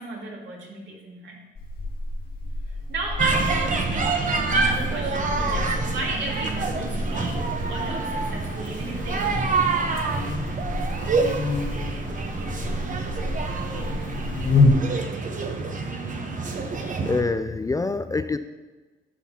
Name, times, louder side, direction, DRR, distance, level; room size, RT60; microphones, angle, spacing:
voice 1, 0.0-1.4 2.7-7.4 7.7-9.7, right 2 dB, 70° right, -2 dB, 2.2 m, -35 dB
Buzz, 1.5-14.7, left 2 dB, 50° left, 1.8 m, -29 dB
sound 1, 3.2-17.2, right 4 dB, 40° right, 1.0 m, -27 dB
voice 2, 16.4-18.4, left 3 dB, 15° left, 9 dB, 0.3 m, -27 dB
12.0 x 6.0 x 2.9 m, 1.3 s
cardioid pair, 90°, 20 cm